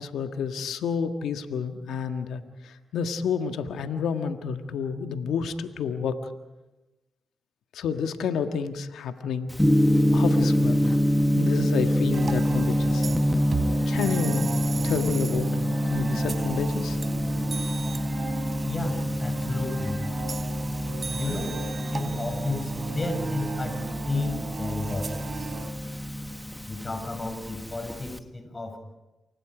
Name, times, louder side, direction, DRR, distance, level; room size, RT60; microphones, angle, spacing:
voice 1, 0.0-6.3 7.7-9.5 10.1-10.9 11.3-13.1 13.9-17.0, left 6 dB, 80° left, 7 dB, 1.6 m, -30 dB
Gong, 9.5-28.2, equal, 5° left, 1.7 m, -26 dB
sound 1, 12.1-25.7, right 3 dB, 55° right, 3.8 m, -35 dB
voice 2, 18.7-20.0 21.1-21.6 21.9-25.5 26.7-28.8, left 2 dB, 35° left, 5 dB, 6.7 m, -33 dB
29.0 x 24.0 x 5.1 m, 1.0 s
supercardioid pair, 45°, 0 cm